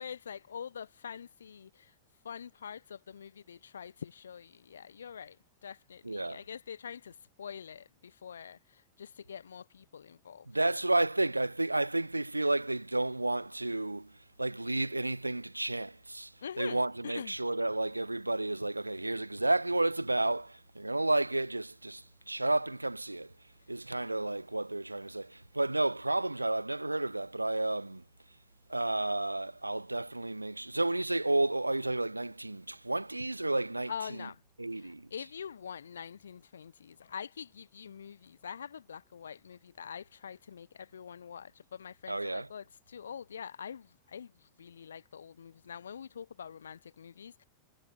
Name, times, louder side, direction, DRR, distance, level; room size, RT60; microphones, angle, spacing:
voice 1, 0.0-1.9 2.2-5.4 5.6-10.5 16.4-17.3 33.9-34.4 34.7-47.4, left 7 dB, 70° left, 2.2 m, -45 dB
voice 2, 6.0-6.4 10.5-14.1 14.4-16.3 16.6-23.3 23.7-28.0 28.7-33.9 34.6-35.1 42.1-42.5, right 2 dB, 85° right, 0.9 m, -31 dB
figure-of-eight pair, 90°, 0 cm